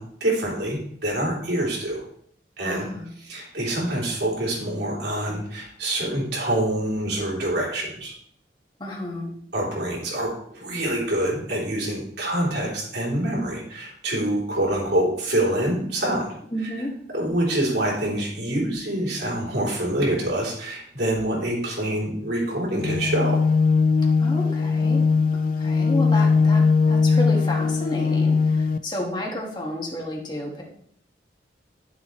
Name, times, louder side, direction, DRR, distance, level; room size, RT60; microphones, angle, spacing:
voice 1, 0.0-2.0 2.6-2.9 3.2-8.1 9.5-16.4 17.1-23.4, right 1 dB, 70° right, -3 dB, 3.7 m, -26 dB
voice 2, 2.6-3.1 8.8-9.3 16.5-17.0 24.2-25.1 25.3-30.6, left 1 dB, 25° left, -1 dB, 2.1 m, -31 dB
sound 1, 22.8-28.8, left 4 dB, 50° left, 0.4 m, -20 dB
12.0 x 7.2 x 3.3 m, 0.67 s
head